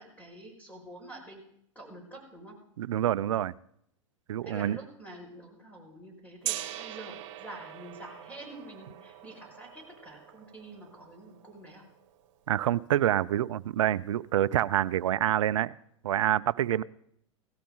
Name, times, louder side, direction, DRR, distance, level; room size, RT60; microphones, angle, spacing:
voice 1, 0.0-1.4 1.8-2.5 4.4-11.8, right 1 dB, 10° left, 2 dB, 5.4 m, -47 dB
voice 2, 2.8-3.5 4.3-4.8 12.5-15.7 16.0-16.8, right 12 dB, 70° right, 18 dB, 0.5 m, -27 dB
Gong, 6.4-12.3, right 14 dB, 50° right, 1.5 m, -42 dB
17.5 x 14.0 x 3.9 m, 0.72 s
hypercardioid pair, 100°, 17 cm